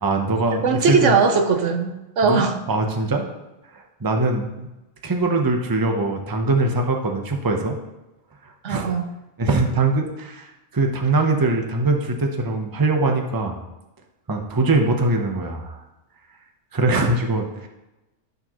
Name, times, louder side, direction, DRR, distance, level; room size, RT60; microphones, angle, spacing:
voice 1, 0.0-1.2 2.2-3.3 3.7-4.7 5.0-7.8 8.4-8.9 9.4-13.6 14.3-15.8 16.7-17.7, right 2 dB, 20° right, 3 dB, 0.8 m, -22 dB
voice 2, 0.6-2.6 8.6-9.1, right 5 dB, 70° right, 6 dB, 1.1 m, -19 dB
11.5 x 6.7 x 3.0 m, 1.0 s
omnidirectional pair, 1.3 m